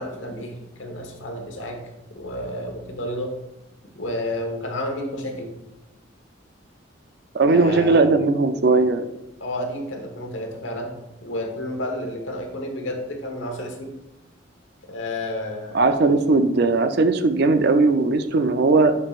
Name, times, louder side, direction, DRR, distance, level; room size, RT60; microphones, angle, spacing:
voice 1, 0.0-1.8 2.1-3.3 3.9-5.5 7.4-8.1 9.4-10.9 11.2-13.9 14.9-16.1, left 1 dB, 75° left, 3 dB, 1.2 m, -31 dB
voice 2, 7.3-9.1 15.7-18.9, right 3 dB, 55° right, 9 dB, 0.5 m, -18 dB
8.5 x 5.5 x 2.4 m, 0.93 s
head